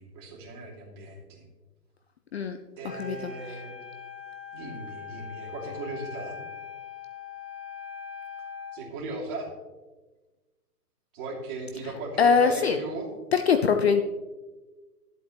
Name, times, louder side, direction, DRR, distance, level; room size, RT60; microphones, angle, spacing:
voice 1, 0.0-1.5 2.8-3.8 4.5-6.4 8.7-9.5 11.1-13.1, right 2 dB, 30° right, -4 dB, 2.9 m, -37 dB
Wind instrument woodwind instrument, 2.9-8.8, left 6 dB, 85° left, 2.0 m, -41 dB
voice 2, 3.0-3.3 12.2-12.8 13.3-14.0, left 6 dB, 45° left, 8 dB, 0.5 m, -22 dB
13.0 x 8.0 x 3.2 m, 1.2 s
hypercardioid pair, 150°, 48 cm